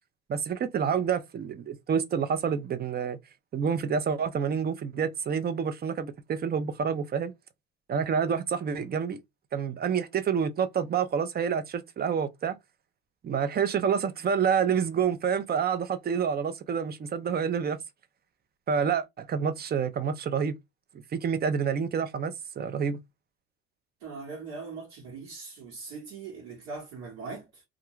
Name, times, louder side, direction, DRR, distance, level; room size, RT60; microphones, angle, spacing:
voice 1, 0.3-3.2 3.5-7.3 7.9-9.2 9.5-12.5 13.2-17.8 18.7-20.5 21.1-23.0, right 7 dB, 35° right, 0.6 m, -28 dB
voice 2, 24.0-27.6, right 4 dB, 70° right, 1.3 m, -41 dB
2.4 x 2.2 x 3.0 m
supercardioid pair, 75°, 29 cm